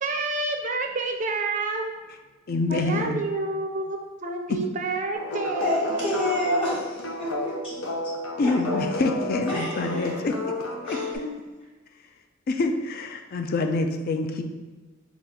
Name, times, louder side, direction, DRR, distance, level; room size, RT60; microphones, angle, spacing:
voice 1, 0.0-1.9 2.7-6.1 13.7-13.8, right 3 dB, 40° right, 3 dB, 0.4 m, -29 dB
voice 2, 2.5-3.2 4.5-4.6 8.4-10.3 10.9-11.0 12.5-14.4, left 3 dB, 50° left, 5 dB, 0.3 m, -26 dB
sound 1, 5.1-11.2, left 1 dB, 85° left, 0.6 m, -32 dB
voice 3, 5.6-7.8 8.4-8.5 9.5-10.1 10.8-11.3, left 1 dB, 25° left, -7 dB, 1.5 m, -29 dB
3.8 x 2.3 x 4.2 m, 1.3 s
head